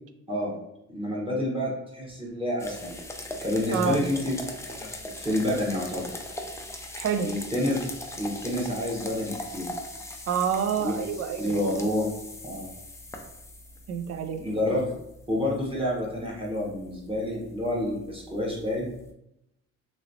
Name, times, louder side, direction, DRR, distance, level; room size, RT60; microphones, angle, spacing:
voice 1, 0.9-2.9 3.4-4.3 4.6-6.1 7.2-7.8 8.2-9.7 10.8-10.9 11.4-12.1 12.4-12.7 14.4-14.9 15.3-18.9, left 1 dB, 20° right, -4 dB, 1.1 m, -28 dB
sound 1, 2.6-19.1, left 1 dB, 10° left, 0.4 m, -41 dB
voice 2, 3.7-4.0 6.9-7.3 10.3-11.6 13.9-14.4, right 7 dB, 55° right, 7 dB, 0.5 m, -28 dB
3.0 x 2.9 x 2.7 m, 0.82 s
cardioid pair, 90°, 30 cm